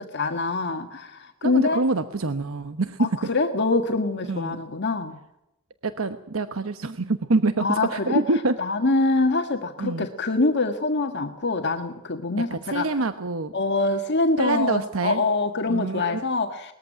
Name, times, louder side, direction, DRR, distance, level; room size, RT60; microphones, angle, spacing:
voice 1, 0.0-1.8 3.0-5.2 7.6-8.2 8.6-12.9 13.5-16.7, left 3 dB, 55° left, 6 dB, 1.7 m, -25 dB
voice 2, 1.4-3.1 4.3-4.6 5.8-8.6 9.8-10.1 12.5-13.5 14.4-15.2 15.7-16.2, right 3 dB, 75° right, 10 dB, 1.0 m, -26 dB
20.5 x 14.0 x 9.0 m, 0.88 s
head